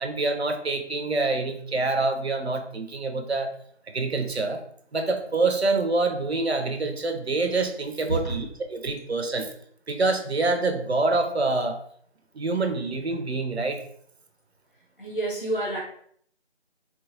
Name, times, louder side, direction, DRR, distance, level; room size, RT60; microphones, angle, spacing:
voice 1, 0.0-3.5 3.9-4.6 4.9-8.5 8.7-9.5 9.9-11.8 12.3-13.8, right 3 dB, 70° right, 5 dB, 0.7 m, -26 dB
voice 2, 8.1-8.4 15.0-15.8, right 2 dB, 50° left, -2 dB, 1.6 m, -28 dB
4.5 x 2.9 x 2.8 m, 0.63 s
figure-of-eight pair, 170°, 34 cm